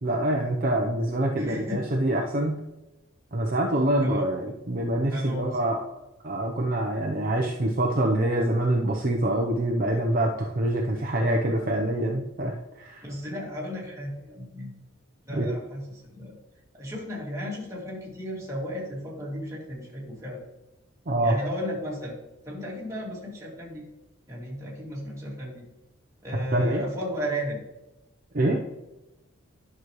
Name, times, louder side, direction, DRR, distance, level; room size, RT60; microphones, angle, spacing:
voice 1, 0.0-2.6 3.3-5.8 6.2-13.0 15.3-15.5 21.1-21.3 26.5-26.8 28.3-28.6, right 1 dB, 45° right, 0 dB, 0.7 m, -25 dB
voice 2, 1.3-1.9 4.0-4.2 5.1-5.6 13.0-14.7 15.3-16.3 16.7-20.4 21.2-22.2 22.4-23.8 24.3-25.7 26.2-27.6, equal, 15° right, -5 dB, 2.4 m, -34 dB
11.0 x 6.1 x 3.1 m, 0.98 s
head